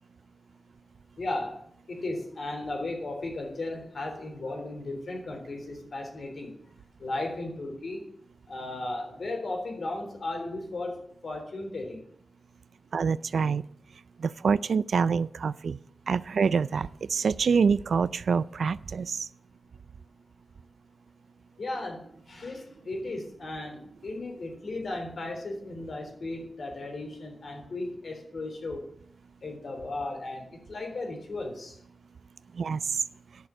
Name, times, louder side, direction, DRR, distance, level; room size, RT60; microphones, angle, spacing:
voice 1, 1.2-1.6 1.9-6.5 7.0-8.0 8.5-12.0 21.6-28.8 29.4-31.8, left 2 dB, 65° left, 3 dB, 3.7 m, -35 dB
voice 2, 12.9-13.6 14.2-15.8 16.1-19.3 32.6-32.8, right 5 dB, 80° right, 18 dB, 0.4 m, -26 dB
10.5 x 6.5 x 8.4 m, 0.67 s
wide cardioid pair, 75°, 0 cm